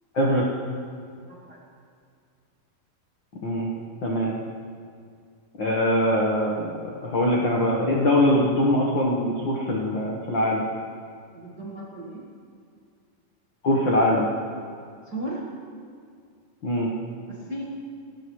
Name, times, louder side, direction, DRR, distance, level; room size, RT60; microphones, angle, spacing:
voice 1, 0.1-0.5 3.4-3.7 4.0-4.3 5.6-10.6 13.6-14.3 16.6-16.9, left 1 dB, 90° left, -3 dB, 1.0 m, -22 dB
voice 2, 1.2-1.6 11.3-12.2 15.0-15.5 17.3-17.6, right 1 dB, 50° right, -5 dB, 1.2 m, -35 dB
19.0 x 16.5 x 3.2 m, 2.2 s
omnidirectional pair, 4.3 m